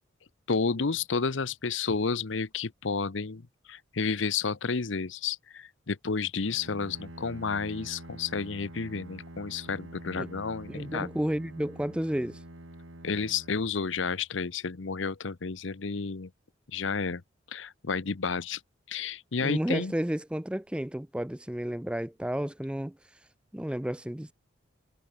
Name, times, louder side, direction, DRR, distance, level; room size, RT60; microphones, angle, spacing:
voice 1, 0.5-11.1 13.0-16.3 16.7-17.2 17.5-18.6 18.9-19.9, left 5 dB, 70° left, 0.8 m, -31 dB
Bowed string instrument, 6.4-14.4, right 1 dB, 80° right, 2.8 m, -46 dB
voice 2, 10.7-12.4 19.4-23.0 23.5-24.3, equal, 5° right, 0.4 m, -32 dB
head